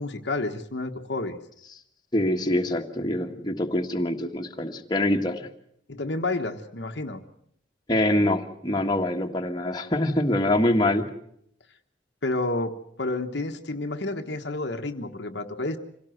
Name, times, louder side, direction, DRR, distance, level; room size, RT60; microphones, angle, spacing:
voice 1, 0.0-1.4 5.9-7.2 12.2-15.8, left 2 dB, 60° left, 5 dB, 1.3 m, -30 dB
voice 2, 2.1-5.5 7.9-11.1, left 1 dB, 20° left, 2 dB, 1.7 m, -24 dB
26.0 x 17.5 x 7.8 m, 0.72 s
head